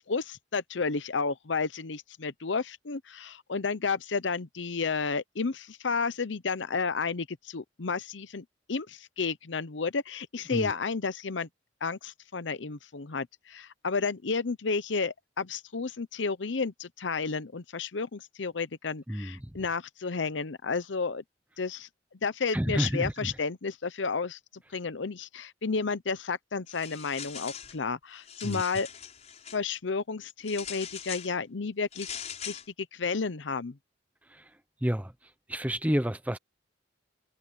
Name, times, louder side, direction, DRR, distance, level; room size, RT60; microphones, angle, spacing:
voice 1, 0.0-11.5 11.8-21.2 21.6-21.9 22.2-24.4 24.7-28.9 29.5-32.1 32.4-33.8, left 4 dB, 80° left, 0.8 m, -32 dB
voice 2, 19.1-19.5 22.5-23.3 28.4-28.6 34.3-34.5 34.8-35.1 35.5-36.4, equal, 10° right, 0.8 m, -30 dB
sound 1, 26.7-27.8 28.2-29.6 30.5-31.3 31.9-32.7, left 8 dB, 35° left, 6.2 m, -41 dB
head